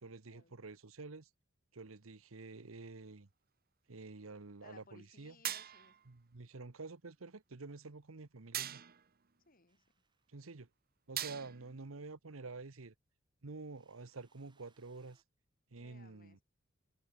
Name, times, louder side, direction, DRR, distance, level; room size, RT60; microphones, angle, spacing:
voice 1, 0.0-1.3 1.7-3.3 3.9-5.4 6.1-8.8 10.3-10.7 11.1-12.9 13.4-15.2 15.7-16.4, right 3 dB, 80° right, 1.1 m, -49 dB
voice 2, 4.6-6.0 9.4-9.8 11.3-11.8 15.8-16.4, left 3 dB, 45° left, 3.5 m, -63 dB
sound 1, 5.4-6.1 8.5-9.1 11.2-11.8, right 12 dB, 50° right, 1.0 m, -41 dB
sound 2, 9.7-10.7 13.6-15.2, right 4 dB, 25° right, 7.2 m, -76 dB
head